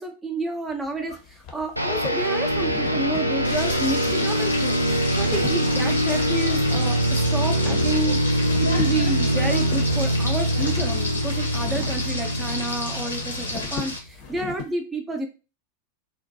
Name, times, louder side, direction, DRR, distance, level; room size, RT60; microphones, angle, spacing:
voice 1, 0.0-4.8 5.2-8.2 8.6-15.3, right 2 dB, 15° right, 4 dB, 0.5 m, -30 dB
sound 1, 0.7-14.7, left 6 dB, 40° left, 0.6 m, -39 dB
sound 2, 1.8-14.0, right 1 dB, 90° right, 0.3 m, -24 dB
Frying (food), 3.4-14.0, left 3 dB, 80° left, 0.7 m, -31 dB
2.5 x 2.2 x 2.5 m, 0.31 s
figure-of-eight pair, 90°, 0 cm